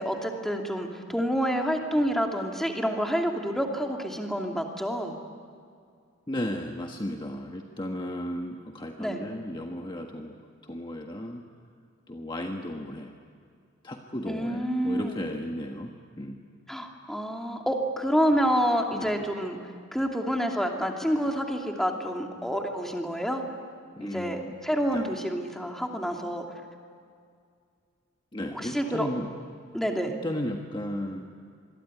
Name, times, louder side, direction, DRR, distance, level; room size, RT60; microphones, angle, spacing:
voice 1, 0.0-5.2 9.0-9.2 14.3-15.2 16.7-19.6 19.9-23.4 24.0-26.4 28.5-29.1 29.7-30.1, equal, ahead, 2 dB, 2.6 m, -28 dB
voice 2, 6.3-10.4 10.6-11.4 12.1-13.1 13.8-16.4 18.9-19.3 23.9-24.5 24.9-25.2 28.3-29.3 30.1-31.4, left 1 dB, 25° left, 2 dB, 1.5 m, -35 dB
26.0 x 22.5 x 9.7 m, 2.2 s
head